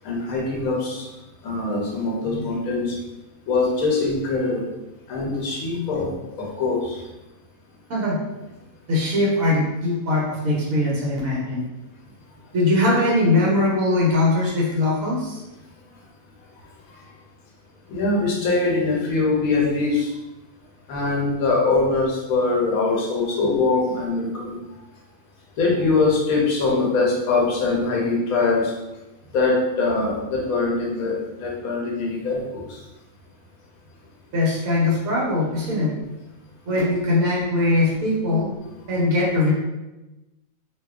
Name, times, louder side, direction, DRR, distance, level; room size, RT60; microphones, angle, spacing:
voice 1, 0.0-1.1 1.4-3.0 3.5-4.7 5.1-7.0 17.9-20.1 20.9-24.6 25.6-28.7 29.3-32.6, left 3 dB, 75° left, -2 dB, 1.1 m, -22 dB
voice 2, 8.9-11.6 12.5-15.4 34.3-35.9 36.7-38.5 38.9-39.5, left 2 dB, 75° right, -4 dB, 1.2 m, -21 dB
2.7 x 2.1 x 2.3 m, 1.0 s
omnidirectional pair, 1.5 m